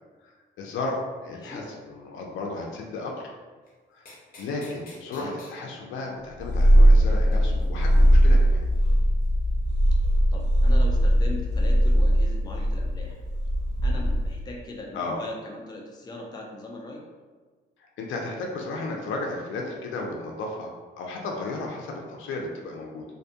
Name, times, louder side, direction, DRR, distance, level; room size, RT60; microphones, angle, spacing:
voice 1, 0.6-3.3 3.9-4.1 4.4-8.6 14.9-15.2 18.0-23.0, left 2 dB, 80° left, 0 dB, 0.5 m, -34 dB
voice 2, 1.3-1.7 5.1-5.4 10.3-13.2 13.8-17.0, left 2 dB, 20° left, -1 dB, 0.4 m, -39 dB
sound 1, 3.7-3.8 4.1-5.5 7.3-7.7 8.3-8.4 8.6-8.8 9.2-9.3 10.0-10.1, left 2 dB, 45° left, 0.8 m, -48 dB
Purr, 6.4-14.5, equal, 70° right, 0.8 m, -20 dB
2.5 x 2.2 x 2.7 m, 1.4 s
cardioid pair, 90°, 20 cm